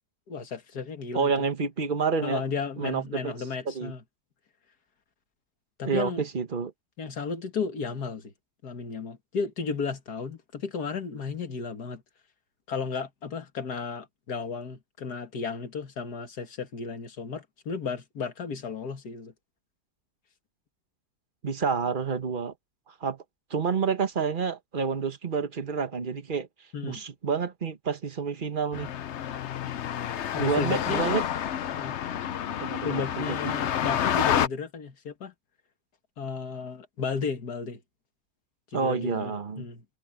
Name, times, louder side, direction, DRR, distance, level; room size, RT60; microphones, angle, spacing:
voice 1, 0.3-1.5 2.2-4.0 5.8-6.2 7.0-8.3 8.6-12.0 12.7-19.3 26.7-27.0 30.3-31.1 31.7-32.0 32.8-35.3 36.2-37.8 38.7-39.8, left 5 dB, 80° left, 2.4 m, -34 dB
voice 2, 1.1-2.4 2.8-3.3 3.6-3.9 5.8-6.7 21.4-22.5 22.9-23.2 23.5-26.5 26.8-28.9 30.3-31.2 32.6-33.4 38.7-39.6, right 5 dB, 35° right, 1.4 m, -29 dB
sound 1, 28.7-34.5, left 9 dB, 55° left, 0.8 m, -29 dB
omnidirectional pair, 1.7 m